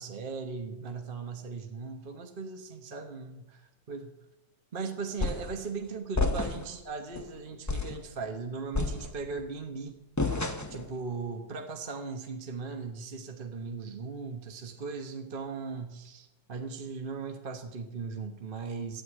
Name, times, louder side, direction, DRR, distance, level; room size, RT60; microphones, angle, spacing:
voice 1, 0.0-4.1 4.7-10.0 10.7-19.0, right 4 dB, 35° right, 4 dB, 1.0 m, -38 dB
sound 1, 5.2-5.6 6.1-6.8 7.1-7.3 7.7-8.0 8.7-9.4 10.2-10.9, left 3 dB, 15° left, 0.5 m, -30 dB
13.0 x 9.7 x 8.6 m, 0.98 s
omnidirectional pair, 2.1 m